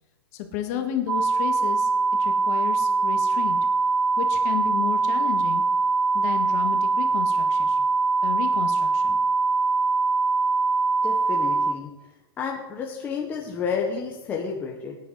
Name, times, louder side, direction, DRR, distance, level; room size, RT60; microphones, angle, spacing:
voice 1, 0.3-1.9 2.2-3.6 4.2-5.6 6.1-7.8 8.2-9.2, left 9 dB, 35° left, 5 dB, 1.7 m, -32 dB
sound 1, 1.1-11.7, right 4 dB, 85° right, 0.8 m, -22 dB
voice 2, 11.0-11.9 12.4-15.0, left 5 dB, 15° left, -1 dB, 1.0 m, -30 dB
17.0 x 9.3 x 4.1 m, 1.1 s
supercardioid pair, 170°, 14 cm